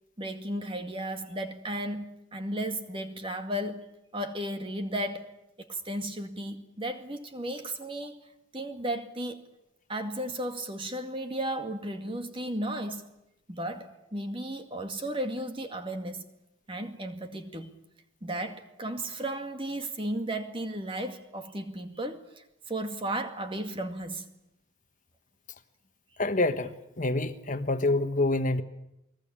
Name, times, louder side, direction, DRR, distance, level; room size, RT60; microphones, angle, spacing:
voice 1, 0.2-5.3 5.6-8.2 8.5-9.4 9.9-13.0 13.5-16.3 16.7-17.7 18.2-24.3, right 1 dB, 25° right, 2.2 m, -34 dB
voice 2, 26.2-28.6, left 2 dB, 40° left, 1.3 m, -27 dB
28.5 x 20.0 x 8.8 m
head